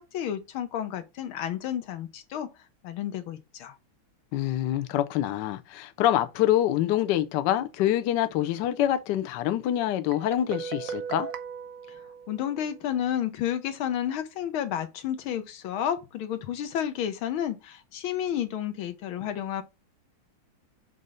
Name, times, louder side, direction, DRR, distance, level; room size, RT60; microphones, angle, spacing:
voice 1, 0.0-2.5 2.8-3.7 12.3-19.6, left 10 dB, 90° left, 1.7 m, -31 dB
voice 2, 4.3-11.3, left 12 dB, 70° left, 1.2 m, -26 dB
Guitar, 10.1-12.9, right 6 dB, 60° right, 0.9 m, -38 dB
5.5 x 4.0 x 4.8 m
omnidirectional pair, 2.2 m